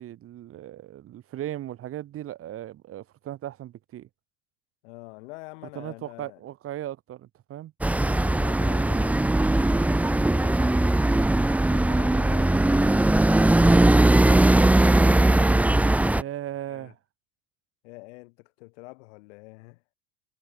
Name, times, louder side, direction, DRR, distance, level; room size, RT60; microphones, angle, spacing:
voice 1, 0.0-4.1 5.8-7.7 12.1-12.4 16.2-17.0, right 12 dB, 40° right, 2.1 m, -37 dB
voice 2, 4.8-6.4 7.9-11.0 16.7-16.9 17.8-19.8, left 25 dB, 80° left, 6.0 m, -46 dB
sound 1, 7.8-16.2, right 1 dB, 5° right, 0.9 m, -19 dB
supercardioid pair, 135°, 35 cm